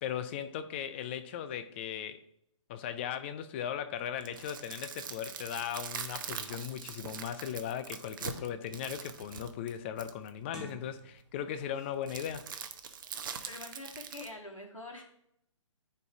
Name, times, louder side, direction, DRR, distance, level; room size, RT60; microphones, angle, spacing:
voice 1, 0.0-2.2 2.7-12.5, left 9 dB, 20° left, 0.5 m, -38 dB
sound 1, 4.1-10.3 12.1-14.3, right 7 dB, 40° right, 0.7 m, -42 dB
sound 2, 8.3-8.8 9.2-9.6 10.4-11.4 11.7-11.9, right 3 dB, 5° right, 0.8 m, -53 dB
voice 2, 13.5-15.0, left 2 dB, 85° left, 2.4 m, -45 dB
10.5 x 4.7 x 3.5 m
figure-of-eight pair, 130°, 16 cm